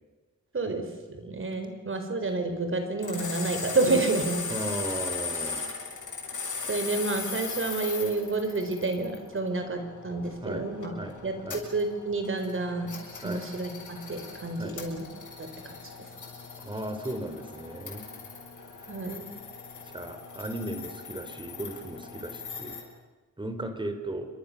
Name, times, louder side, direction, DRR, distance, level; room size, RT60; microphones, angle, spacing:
voice 1, 0.5-4.4 6.7-10.9 11.2-11.3 11.7-12.9 13.2-15.1 15.4-15.7 18.9-19.2, right 3 dB, 45° right, 6 dB, 4.6 m, -29 dB
sound 1, 3.0-22.8, left 5 dB, 85° left, 7.3 m, -39 dB
voice 2, 4.5-5.6 10.4-10.6 10.9-11.1 11.4-11.6 13.2-13.4 14.5-14.8 16.6-18.1 18.7-19.0 19.8-22.8 23.4-24.3, right 1 dB, 15° right, 7 dB, 3.5 m, -36 dB
29.5 x 25.5 x 6.9 m, 1.2 s
wide cardioid pair, 175°, 30 cm